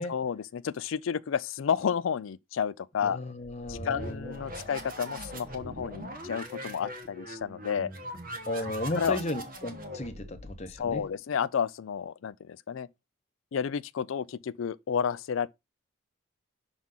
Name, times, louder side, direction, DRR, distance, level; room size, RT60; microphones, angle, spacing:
voice 1, 0.1-3.2 3.7-7.9 9.0-9.2 10.8-12.9 13.5-15.5, left 7 dB, 80° left, 0.4 m, -31 dB
voice 2, 3.0-4.7 8.5-11.1, left 1 dB, 35° left, 0.9 m, -35 dB
sound 1, 3.6-11.1, right 1 dB, 45° right, 1.2 m, -41 dB
6.1 x 3.7 x 5.5 m
head